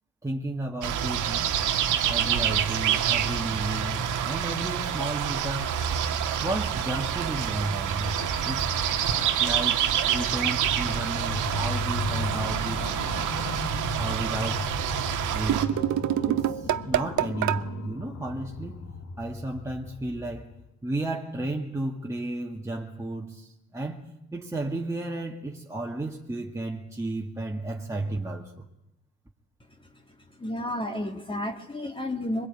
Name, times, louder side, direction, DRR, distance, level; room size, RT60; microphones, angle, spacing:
voice 1, 0.2-1.6 2.1-8.7 9.4-12.9 14.0-14.9 15.3-15.8 16.3-18.8 19.2-20.5 20.8-28.7, right 2 dB, 10° right, 2.1 m, -33 dB
sound 1, 0.8-15.7, right 9 dB, 90° right, 1.9 m, -27 dB
sound 2, 10.1-20.6, left 2 dB, 65° left, 3.0 m, -36 dB
sound 3, 15.4-17.6, right 12 dB, 70° right, 0.9 m, -26 dB
voice 2, 30.4-32.5, left 1 dB, 15° left, 2.3 m, -31 dB
23.5 x 22.0 x 9.2 m
cardioid pair, 90°, 30 cm